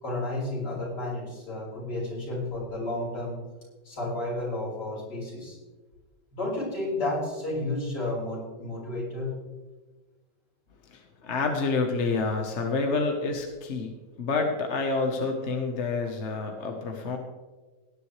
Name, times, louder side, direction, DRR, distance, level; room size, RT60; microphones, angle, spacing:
voice 1, 0.0-3.4 3.9-5.6 6.3-9.3, left 2 dB, 60° left, -5 dB, 5.5 m, -32 dB
voice 2, 11.2-13.9 14.2-17.2, left 4 dB, 40° left, 3 dB, 1.3 m, -28 dB
18.0 x 10.5 x 3.3 m, 1.2 s
omnidirectional pair, 2.1 m